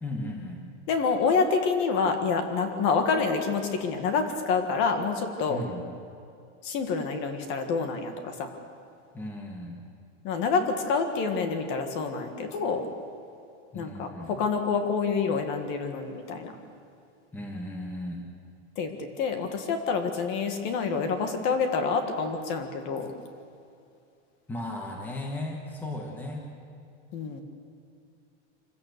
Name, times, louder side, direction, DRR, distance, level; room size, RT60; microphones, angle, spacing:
voice 1, 0.0-0.6 5.5-5.8 9.1-9.8 13.7-14.4 17.3-18.2 24.5-26.5, left 1 dB, 5° left, 1 dB, 1.5 m, -36 dB
voice 2, 0.9-5.6 6.6-8.5 10.2-12.9 13.7-16.5 18.8-23.1 27.1-27.4, left 5 dB, 35° left, 6 dB, 1.8 m, -27 dB
26.0 x 16.0 x 6.8 m, 2.5 s
supercardioid pair, 170°, 35 cm